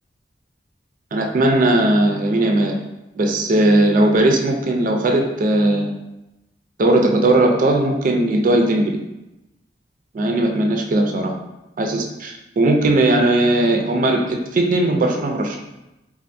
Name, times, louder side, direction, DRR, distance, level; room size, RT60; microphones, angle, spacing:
voice 1, 1.1-2.8 3.2-5.9 6.8-9.0 10.1-11.3 11.8-15.6, right 1 dB, 50° right, 3 dB, 0.4 m, -18 dB
4.2 x 2.4 x 2.6 m, 0.96 s
head